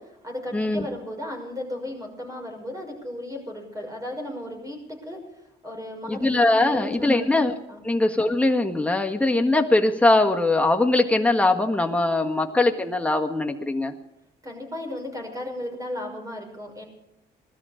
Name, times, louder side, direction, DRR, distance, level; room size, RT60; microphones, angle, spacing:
voice 1, 0.0-5.2 5.6-7.3 7.7-7.9 14.4-16.8, left 1 dB, 20° right, 2 dB, 6.0 m, -35 dB
voice 2, 0.5-0.9 6.1-7.5 7.8-13.9, left 2 dB, 5° left, 3 dB, 1.6 m, -21 dB
19.5 x 13.0 x 5.1 m, 0.83 s
cardioid pair, 95°, 18 cm